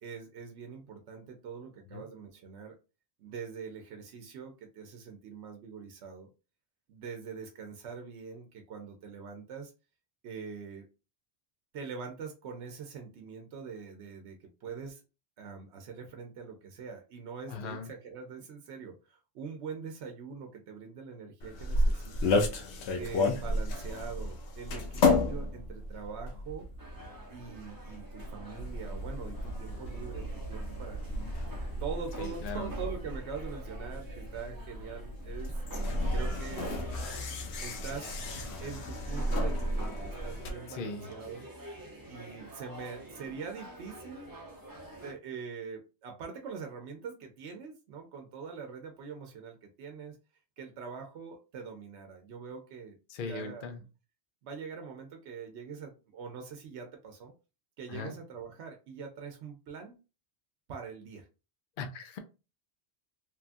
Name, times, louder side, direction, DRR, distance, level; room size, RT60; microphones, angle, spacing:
voice 1, 0.0-2.8 3.2-6.3 6.9-9.7 10.2-10.9 11.7-15.0 15.4-22.4 23.0-26.7 27.3-31.3 31.8-35.5 36.1-37.0 37.6-38.1 38.6-41.5 42.1-44.3 45.0-50.2 50.6-53.0 53.2-53.9 54.4-57.3 57.8-60.0 60.7-61.3, right 5 dB, 90° right, 4 dB, 0.9 m, -43 dB
voice 2, 17.5-17.9 32.2-32.7 40.7-41.1 53.1-53.8 57.9-58.1 61.8-62.2, left 4 dB, 60° left, 6 dB, 0.6 m, -39 dB
sound 1, 21.4-40.5, left 2 dB, 80° left, 0.9 m, -33 dB
sound 2, 26.8-45.1, right 1 dB, 25° right, 0.6 m, -48 dB
3.0 x 2.3 x 2.5 m, 0.30 s
omnidirectional pair, 1.1 m